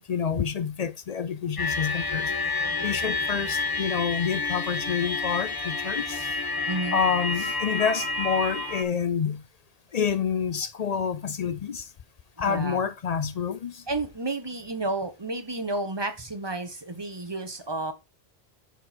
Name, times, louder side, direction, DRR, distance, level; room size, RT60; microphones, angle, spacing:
voice 1, 0.0-2.3 2.8-6.4 6.9-9.4 9.9-11.9 12.4-13.8, left 7 dB, 50° left, 0.5 m, -28 dB
sound 1, 1.6-8.8, left 3 dB, 20° left, 1.0 m, -29 dB
voice 2, 6.7-7.0 12.4-12.8 13.9-17.9, right 2 dB, 25° right, 1.3 m, -31 dB
7.1 x 6.2 x 4.4 m
omnidirectional pair, 1.1 m